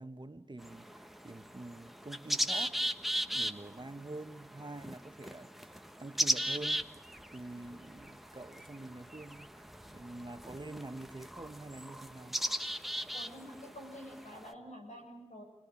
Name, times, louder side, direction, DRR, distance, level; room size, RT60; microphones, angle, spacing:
voice 1, 0.0-2.9 3.2-6.8 7.3-9.5 9.9-12.4, right 2 dB, 40° right, 9 dB, 1.4 m, -46 dB
sound 1, 0.6-14.5, equal, ahead, 1.4 m, -38 dB
voice 2, 13.1-15.4, equal, 80° left, 2 dB, 7.3 m, -48 dB
28.5 x 20.0 x 8.5 m, 1.0 s
wide cardioid pair, 45°, 12 cm